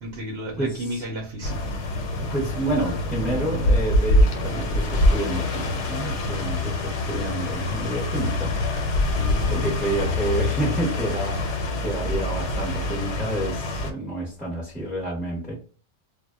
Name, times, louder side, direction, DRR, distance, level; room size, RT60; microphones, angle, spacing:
voice 1, 0.0-1.7 9.1-10.1, left 1 dB, 70° right, 0.8 m, -33 dB
voice 2, 0.6-1.0 2.3-8.9 9.5-15.5, right 1 dB, ahead, 0.5 m, -29 dB
sound 1, 1.4-13.9, left 1 dB, 80° left, 0.9 m, -25 dB
2.1 x 2.0 x 3.4 m
omnidirectional pair, 1.2 m